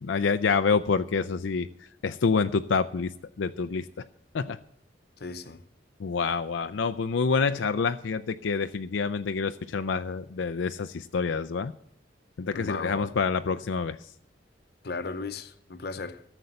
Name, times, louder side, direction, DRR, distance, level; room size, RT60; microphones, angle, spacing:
voice 1, 0.0-1.7 2.0-3.1 3.4-4.0 4.3-4.6 6.0-11.7 12.4-14.1, left 5 dB, 85° left, 0.5 m, -27 dB
voice 2, 5.2-5.6 12.5-13.1 14.8-16.2, left 3 dB, 60° left, 0.8 m, -36 dB
13.5 x 6.9 x 7.7 m
head